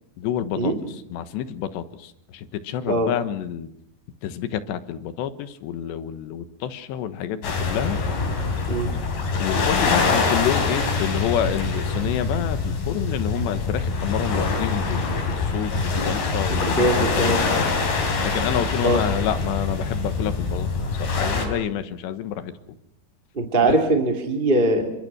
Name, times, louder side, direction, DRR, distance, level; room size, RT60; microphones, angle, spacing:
voice 1, 0.2-0.7 1.1-3.7 4.2-8.0 9.4-17.8 18.2-22.5 23.6-23.8, left 10 dB, 90° left, 11 dB, 3.5 m, -28 dB
sound 1, 7.4-21.5, left 4 dB, 60° left, 5.9 m, -24 dB
voice 2, 16.5-17.4 18.8-19.0 23.3-24.9, right 2 dB, 15° right, 2 dB, 2.0 m, -21 dB
29.0 x 25.0 x 6.2 m, 0.74 s
omnidirectional pair, 4.9 m